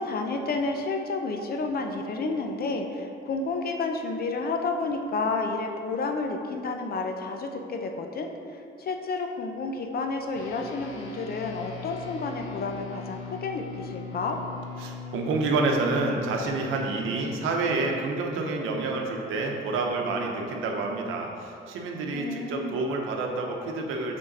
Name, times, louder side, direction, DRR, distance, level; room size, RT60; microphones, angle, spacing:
voice 1, 0.0-14.4 22.1-22.8, left 3 dB, 50° left, 4 dB, 0.6 m, -30 dB
sound 1, 10.3-20.0, left 5 dB, 90° left, 0.6 m, -41 dB
voice 2, 14.8-24.2, right 3 dB, 85° right, 1 dB, 0.8 m, -28 dB
6.2 x 3.7 x 4.0 m, 2.6 s
cardioid pair, 90°, 20 cm